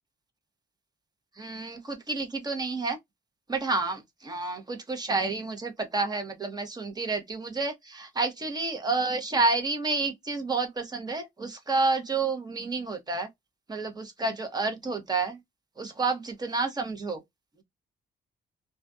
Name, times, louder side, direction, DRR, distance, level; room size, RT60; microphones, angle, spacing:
voice 1, 1.4-3.0 3.5-13.3 13.7-15.4 15.8-17.2, right 3 dB, 25° right, 0.8 m, -29 dB
2.4 x 2.2 x 2.5 m
cardioid pair, 150°, 17 cm